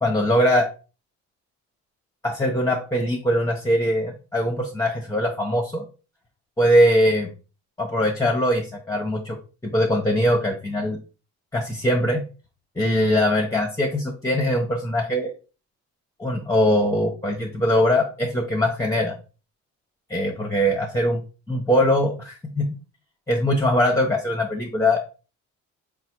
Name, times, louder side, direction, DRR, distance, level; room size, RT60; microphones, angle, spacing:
voice 1, 0.0-0.7 2.2-5.8 6.6-7.3 7.8-9.4 9.6-11.0 11.5-12.2 12.8-15.3 16.2-19.1 20.1-21.2 21.5-22.7 23.3-25.0, equal, 10° left, 1 dB, 0.8 m, -21 dB
4.1 x 2.1 x 4.4 m, 0.34 s
cardioid pair, 90°, 30 cm